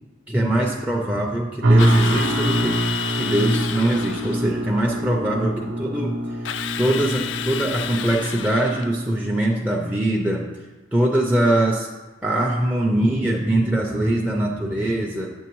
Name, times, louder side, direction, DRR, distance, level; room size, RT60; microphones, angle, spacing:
voice 1, 0.3-2.8 3.1-6.5 6.8-10.5 10.9-11.9 12.2-15.3, right 1 dB, 10° right, -2 dB, 0.4 m, -22 dB
sound 1, 1.6-8.5, right 1 dB, 75° right, 0.6 m, -24 dB
Drill, 1.8-4.5 6.4-8.9, left 9 dB, 60° left, 0.3 m, -30 dB
8.5 x 7.0 x 3.0 m, 1.3 s
head